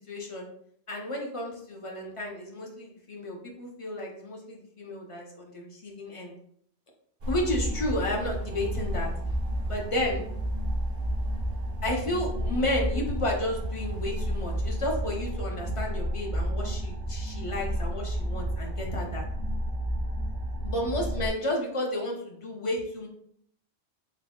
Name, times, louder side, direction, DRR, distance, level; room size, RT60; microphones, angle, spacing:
voice 1, 0.1-0.5 0.9-6.3 7.3-9.1 9.6-10.2 11.8-19.2 20.6-23.1, left 1 dB, 35° left, -1 dB, 0.6 m, -32 dB
sound 1, 7.2-21.3, equal, 50° right, 0.6 m, -31 dB
3.4 x 2.1 x 3.6 m, 0.68 s
omnidirectional pair, 1.2 m